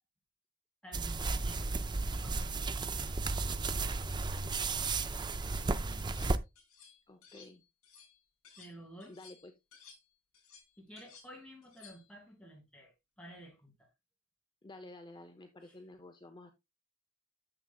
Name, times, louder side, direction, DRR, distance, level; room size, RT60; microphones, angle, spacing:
voice 1, 0.8-1.7 1.9-3.1 8.6-9.2 10.8-13.9 15.6-15.7, right 1 dB, 5° left, 3.2 m, -52 dB
sound 1, 0.9-6.4, right 3 dB, 20° right, 0.4 m, -34 dB
sound 2, 4.0-4.3 4.7-5.7 6.0-8.7 9.0-12.2, left 6 dB, 80° left, 5.2 m, -58 dB
voice 2, 5.5-6.2 7.1-7.6 9.1-9.5 14.6-16.5, left 2 dB, 20° left, 0.6 m, -52 dB
9.7 x 7.1 x 2.3 m
head